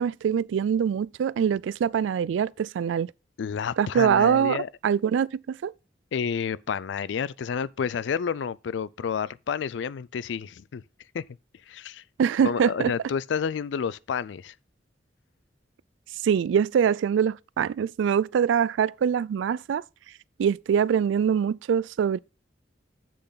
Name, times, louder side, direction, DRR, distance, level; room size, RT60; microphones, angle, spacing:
voice 1, 0.0-3.1 3.8-5.7 12.2-12.9 16.2-19.8 20.4-22.2, right 7 dB, 85° right, 0.3 m, -24 dB
voice 2, 3.4-4.7 6.1-10.8 11.1-11.2 11.7-12.0 12.4-14.5, left 6 dB, 75° left, 0.4 m, -30 dB
7.7 x 6.8 x 3.9 m
head